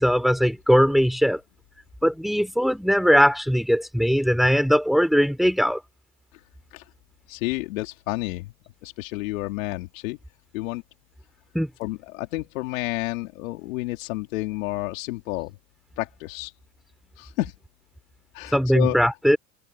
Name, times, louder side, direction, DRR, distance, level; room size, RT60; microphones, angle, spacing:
voice 1, 0.0-1.4 2.0-5.8 11.5-11.7 18.5-19.4, equal, ahead, 4.1 m, -20 dB
voice 2, 7.3-8.5 8.8-10.2 10.5-10.8 11.8-15.5 16.0-16.5 17.2-17.5 18.3-19.0, left 20 dB, 75° left, 2.8 m, -30 dB
hypercardioid pair, 90°, 40 cm